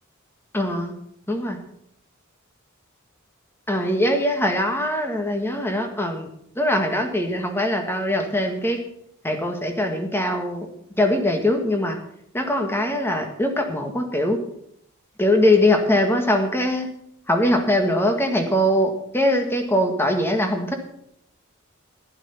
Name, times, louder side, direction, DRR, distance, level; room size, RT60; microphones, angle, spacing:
voice 1, 0.5-0.9 1.3-1.6 3.7-6.3 6.6-8.8 9.2-10.7 11.0-12.0 12.3-14.4 15.2-16.9 17.3-20.7, left 1 dB, 10° left, 5 dB, 1.7 m, -22 dB
12.0 x 11.0 x 5.7 m, 0.73 s
head